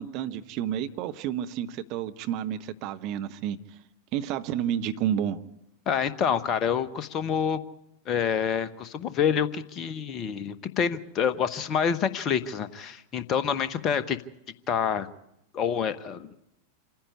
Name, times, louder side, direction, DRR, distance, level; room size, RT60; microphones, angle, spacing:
voice 1, 0.0-3.6 4.1-5.4, right 10 dB, 40° right, 10 dB, 0.9 m, -30 dB
voice 2, 5.9-7.6 8.1-14.2 14.7-15.1 15.5-16.3, left 7 dB, 30° left, 13 dB, 1.0 m, -27 dB
26.5 x 10.5 x 9.7 m, 0.88 s
figure-of-eight pair, 90°, 0 cm